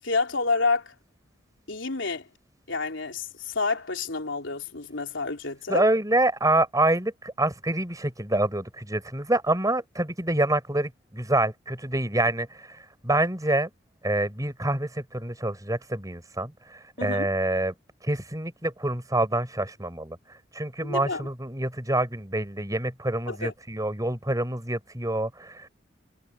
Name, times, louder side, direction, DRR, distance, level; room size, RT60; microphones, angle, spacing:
voice 1, 0.0-0.9 1.7-2.3 2.7-5.9 17.0-17.3 20.8-21.3 23.3-23.5, left 3 dB, 85° left, 3.4 m, -29 dB
voice 2, 5.7-12.5 13.0-13.7 14.0-16.5 17.0-17.7 18.0-20.2 20.5-25.7, right 2 dB, 20° right, 5.9 m, -26 dB
head